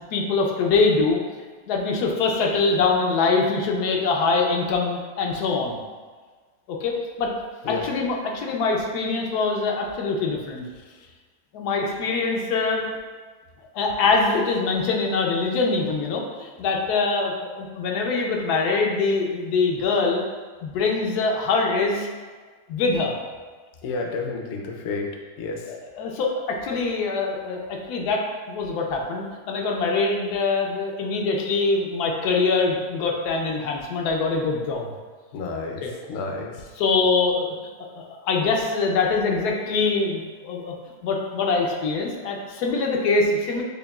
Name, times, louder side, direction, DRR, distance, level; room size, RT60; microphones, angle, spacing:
voice 1, 0.1-1.2 1.7-5.8 6.7-7.3 7.7-10.6 11.5-12.8 13.7-20.2 20.6-22.1 22.7-23.2 25.6-34.9 35.8-35.9 36.8-37.5 38.0-40.7 41.0-43.6, left 4 dB, 90° left, 0 dB, 1.2 m, -23 dB
voice 2, 23.8-25.1 25.4-25.6 35.3-35.8 36.1-36.5, left 4 dB, 70° left, 2 dB, 0.6 m, -30 dB
6.5 x 2.3 x 2.3 m, 1.4 s
omnidirectional pair, 1.6 m